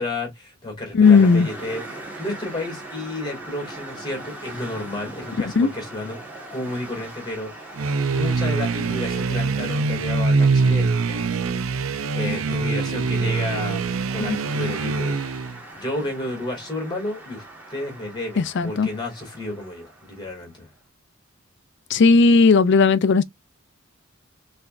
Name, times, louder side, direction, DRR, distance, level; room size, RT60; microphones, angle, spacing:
voice 1, 0.0-6.2 6.5-11.3 12.1-13.8 14.1-15.2 15.8-17.4 17.7-20.7, left 2 dB, 20° left, 2.6 m, -32 dB
voice 2, 0.9-1.5 5.6-5.7 14.2-14.4 18.4-18.9 21.9-23.2, left 4 dB, 60° left, 0.5 m, -15 dB
sound 1, 1.0-20.6, right 2 dB, 10° right, 1.6 m, -41 dB
sound 2, 7.8-15.6, right 4 dB, 80° right, 0.5 m, -23 dB
5.6 x 3.3 x 2.5 m
head